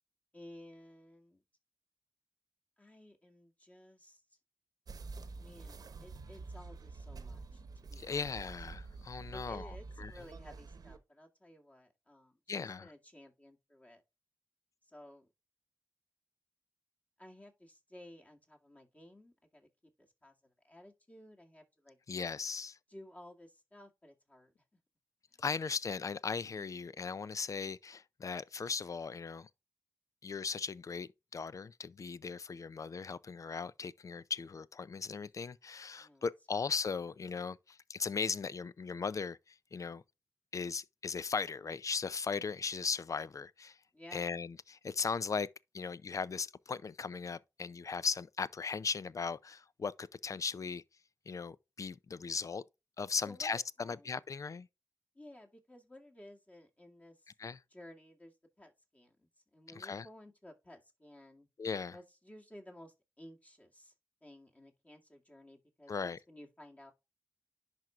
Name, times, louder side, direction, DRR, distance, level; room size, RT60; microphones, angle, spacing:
voice 1, 0.3-1.4 2.8-4.4 5.4-8.4 9.3-14.0 14.8-15.3 17.2-19.7 20.0-22.0 22.9-24.5 25.3-25.4 36.0-36.3 43.9-44.3 53.2-54.1 55.1-57.3 57.7-61.5 61.9-63.9 64.2-66.9, left 1 dB, 20° left, 2.1 m, -55 dB
sound 1, 4.9-11.0, right 3 dB, 75° right, 1.0 m, -48 dB
voice 2, 8.0-10.1 12.5-12.9 22.1-22.8 25.4-29.5 30.2-40.0 40.5-43.8 44.1-45.5 45.7-50.8 51.3-52.6 53.0-54.7 57.4-57.6 59.8-60.1 61.6-62.0 65.9-66.2, left 5 dB, 55° left, 0.4 m, -38 dB
11.0 x 4.5 x 2.4 m
wide cardioid pair, 75°, 7 cm